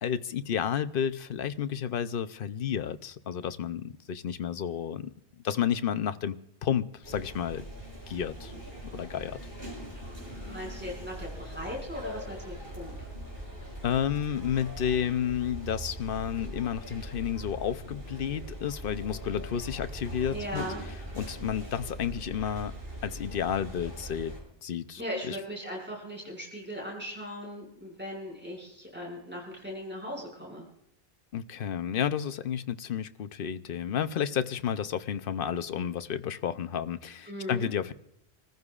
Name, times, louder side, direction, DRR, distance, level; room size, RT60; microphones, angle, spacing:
voice 1, 0.0-6.4 6.6-7.7 8.1-8.5 8.9-9.4 13.8-20.7 21.1-22.7 23.0-24.3 24.6-25.4 31.3-37.9, left 9 dB, 60° left, 11 dB, 0.8 m, -31 dB
sound 1, 7.0-24.4, right 1 dB, 65° right, 6.6 m, -41 dB
voice 2, 10.2-13.1 20.3-20.8 25.0-30.6 37.3-37.7, equal, 10° right, -2 dB, 5.9 m, -38 dB
27.5 x 15.0 x 2.4 m, 0.76 s
omnidirectional pair, 1.1 m